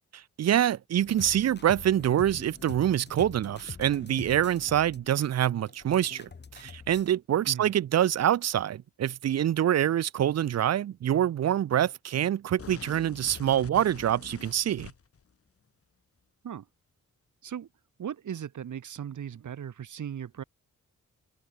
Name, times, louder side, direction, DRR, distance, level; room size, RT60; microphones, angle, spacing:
voice 1, 0.4-14.9, right 11 dB, 60° right, 0.6 m, -26 dB
sound 1, 0.9-7.1, left 5 dB, 35° left, 2.5 m, -45 dB
sound 2, 12.6-15.2, left 6 dB, 50° left, 5.8 m, -45 dB
voice 2, 18.0-20.4, right 9 dB, 80° right, 5.8 m, -37 dB
wide cardioid pair, 135°, 29 cm